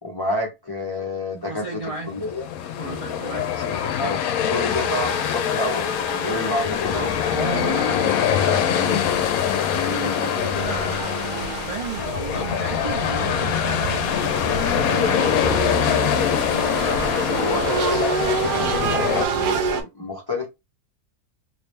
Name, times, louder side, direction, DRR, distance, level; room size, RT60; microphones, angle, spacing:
voice 1, 0.0-1.8 2.1-2.4 3.4-4.2 4.5-7.0 17.4-20.5, left 1 dB, 35° left, 0.3 m, -29 dB
voice 2, 1.5-2.1 2.8-3.5 6.2-6.6 6.9-9.2 9.8-14.4 14.7-16.8, right 3 dB, 50° right, 0.4 m, -33 dB
sound 1, 2.0-19.3, left 9 dB, 70° left, 0.9 m, -23 dB
sound 2, 5.7-19.8, right 5 dB, 80° right, 1.4 m, -29 dB
3.1 x 2.8 x 3.2 m
omnidirectional pair, 1.8 m